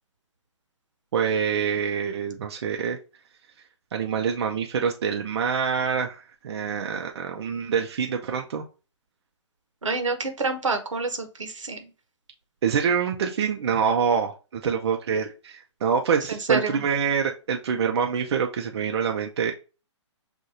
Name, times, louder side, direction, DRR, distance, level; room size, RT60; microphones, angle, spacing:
voice 1, 1.1-3.0 3.9-8.6 12.6-19.5, right 6 dB, 60° right, 2 dB, 0.6 m, -26 dB
voice 2, 9.8-11.9 16.3-16.8, right 4 dB, 90° right, 7 dB, 1.1 m, -28 dB
6.4 x 2.6 x 2.7 m, 0.33 s
hypercardioid pair, 140°, 16 cm